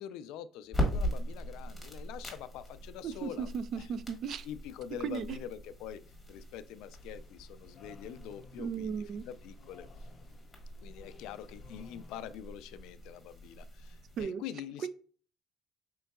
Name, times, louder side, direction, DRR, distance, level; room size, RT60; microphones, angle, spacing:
voice 1, 0.0-3.9 4.4-6.0 6.3-9.9 10.8-14.9, left 10 dB, 85° left, 0.4 m, -45 dB
sound 1, 0.7-14.2, equal, 5° left, 1.5 m, -41 dB
voice 2, 3.0-4.5 5.0-5.4 8.6-9.2 14.2-14.4 14.8-14.9, right 7 dB, 50° right, 0.4 m, -36 dB
sound 2, 7.0-12.3, left 4 dB, 35° left, 0.6 m, -57 dB
5.3 x 3.8 x 2.2 m
cardioid pair, 135°, 0 cm